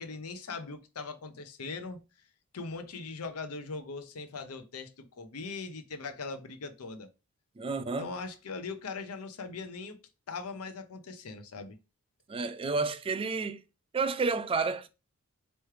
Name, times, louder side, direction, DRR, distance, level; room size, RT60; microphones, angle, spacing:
voice 1, 0.0-2.0 2.5-7.1 8.0-11.8, left 4 dB, 70° left, 0.6 m, -40 dB
voice 2, 7.6-8.1 12.3-13.6 13.9-14.9, right 4 dB, 25° right, 0.4 m, -30 dB
4.6 x 3.1 x 3.2 m
head